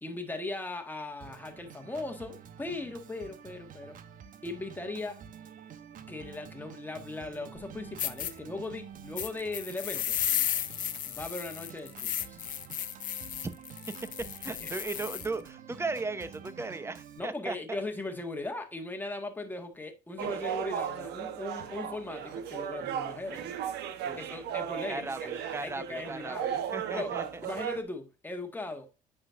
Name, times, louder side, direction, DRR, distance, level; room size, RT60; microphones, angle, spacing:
voice 1, 0.0-4.0 4.4-5.2 6.1-10.2 11.1-12.4 14.6-14.7 17.2-23.4 24.2-25.1 25.6-26.5 26.9-27.1 27.4-28.9, left 2 dB, 10° left, 1.6 m, -38 dB
Organ, 1.2-17.2, right 8 dB, 55° right, 0.9 m, -49 dB
sound 1, 7.6-7.7 8.0-8.3 9.2-15.3, left 10 dB, 55° left, 0.8 m, -34 dB
voice 2, 14.4-17.8 24.1-24.3 24.9-27.2, right 3 dB, 15° right, 0.8 m, -37 dB
sound 2, 20.2-27.8, right 9 dB, 80° right, 1.0 m, -36 dB
8.6 x 6.0 x 2.5 m
cardioid pair, 110°, 17 cm